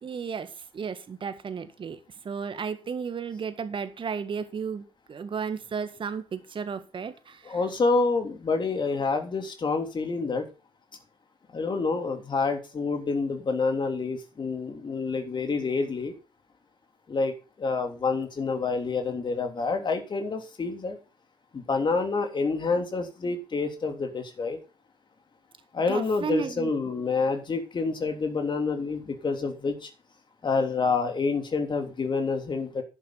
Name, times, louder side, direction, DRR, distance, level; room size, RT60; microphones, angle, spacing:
voice 1, 0.0-7.6 25.9-26.9, right 6 dB, 45° right, 11 dB, 1.7 m, -34 dB
voice 2, 7.4-10.5 11.5-16.1 17.1-17.3 17.6-21.0 21.5-24.6 25.7-29.9 30.4-32.8, left 4 dB, 40° left, 5 dB, 3.3 m, -28 dB
11.0 x 11.0 x 4.0 m, 0.31 s
figure-of-eight pair, 40°, 12 cm